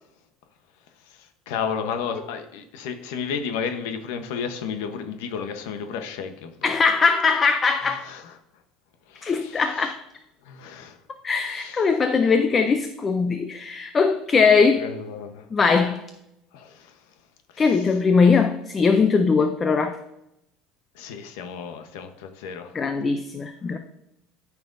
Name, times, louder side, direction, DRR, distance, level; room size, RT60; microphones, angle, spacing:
voice 1, 1.5-6.7 8.0-8.4 9.1-9.9 10.4-11.0 11.4-11.9 14.7-15.5 16.5-16.9 17.5-18.0 20.9-22.7, left 6 dB, 75° left, 7 dB, 0.9 m, -33 dB
voice 2, 6.6-8.0 9.2-10.0 11.2-14.8 15.5-16.0 17.6-20.0 22.7-23.8, left 5 dB, 15° left, 8 dB, 0.4 m, -20 dB
13.0 x 5.8 x 2.6 m, 0.85 s
cardioid pair, 180°, 0 cm